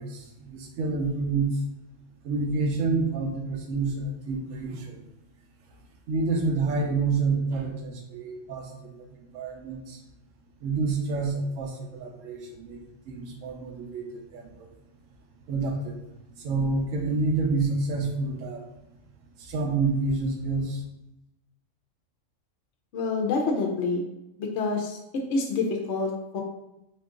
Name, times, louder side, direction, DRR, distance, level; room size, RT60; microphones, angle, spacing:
voice 1, 0.0-1.6 2.2-5.0 6.1-9.1 9.3-10.0 10.6-14.7 15.5-16.0 16.4-18.6 19.4-20.8, right 3 dB, 80° right, 1 dB, 1.0 m, -28 dB
voice 2, 22.9-24.0 24.4-25.0 25.3-26.4, left 3 dB, 70° left, 1 dB, 0.8 m, -27 dB
3.7 x 2.4 x 3.7 m, 0.89 s
omnidirectional pair, 1.3 m